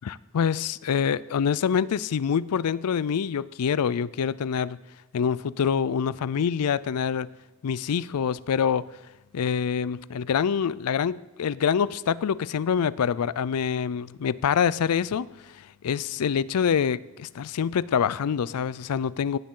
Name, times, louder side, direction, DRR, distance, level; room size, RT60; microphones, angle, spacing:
voice 1, 0.0-4.8 5.1-7.3 7.6-8.9 9.3-15.3 15.5-19.4, left 7 dB, 85° left, 19 dB, 0.4 m, -26 dB
17.0 x 8.8 x 3.8 m, 1.1 s
head